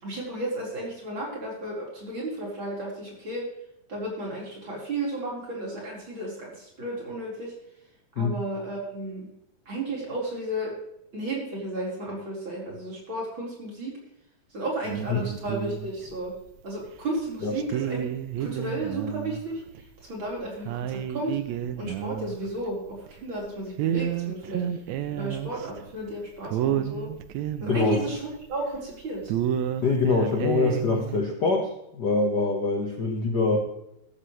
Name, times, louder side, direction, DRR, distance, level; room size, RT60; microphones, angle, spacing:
voice 1, 0.0-3.4 3.9-7.5 8.2-9.3 9.7-10.7 11.1-13.9 14.5-16.3 16.6-18.1 18.4-19.6 20.0-21.4 21.8-24.8 25.1-27.1 27.6-29.3, right 1 dB, 30° right, -3 dB, 4.9 m, -33 dB
sound 1, 14.8-16.4 16.9-17.0 17.6-19.4 19.7-19.8 20.3-20.4 20.6-23.4 23.8-25.8 26.1-26.2 26.4-28.9 29.2-31.2, right 10 dB, 85° right, 1.6 m, -30 dB
voice 2, 27.7-28.0 29.8-33.6, left 3 dB, 85° left, 1 dB, 0.9 m, -24 dB
13.5 x 13.5 x 3.2 m, 0.81 s
omnidirectional pair, 4.3 m